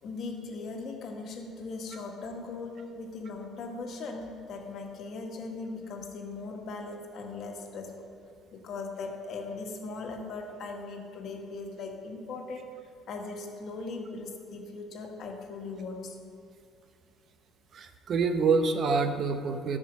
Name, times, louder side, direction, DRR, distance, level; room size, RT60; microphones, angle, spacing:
voice 1, 0.0-8.0 8.5-12.7 13.1-16.1, left 3 dB, 60° left, 2 dB, 1.6 m, -39 dB
voice 2, 17.7-19.8, right 4 dB, 50° right, 7 dB, 0.9 m, -26 dB
13.0 x 5.1 x 5.8 m, 2.5 s
cardioid pair, 95°, 0 cm